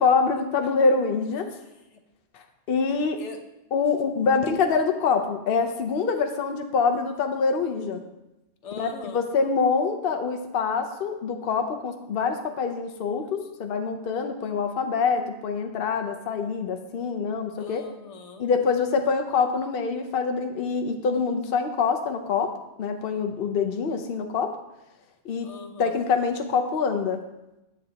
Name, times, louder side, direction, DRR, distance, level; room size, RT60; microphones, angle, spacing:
voice 1, 0.0-1.5 2.7-3.2 3.7-8.0 8.7-17.8 18.4-22.5 22.8-24.5 25.2-25.5 25.8-27.2, left 5 dB, 60° left, 5 dB, 0.9 m, -25 dB
voice 2, 1.5-2.0 3.2-3.4 8.6-9.2 17.6-18.5 25.4-26.0, left 3 dB, 85° left, 5 dB, 1.2 m, -42 dB
9.5 x 8.0 x 2.9 m, 0.94 s
omnidirectional pair, 1.2 m